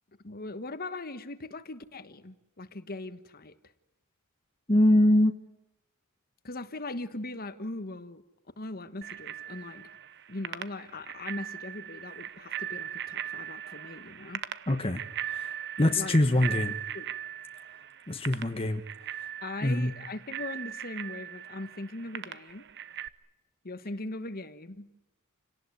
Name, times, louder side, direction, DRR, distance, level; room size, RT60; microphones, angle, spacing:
voice 1, 0.2-3.5 6.4-8.2 8.6-9.9 10.3-14.4 15.8-16.6 16.9-17.1 19.4-22.6 23.6-24.9, left 2 dB, 45° left, 11 dB, 1.4 m, -40 dB
voice 2, 4.7-5.3 14.7-15.0 15.3-15.5 15.8-16.7 18.1-18.8 19.6-19.9, left 1 dB, 25° left, 6 dB, 1.2 m, -23 dB
Bicycle bell, 9.0-23.1, right 10 dB, 55° right, 1.0 m, -39 dB
28.5 x 18.5 x 9.7 m, 0.94 s
head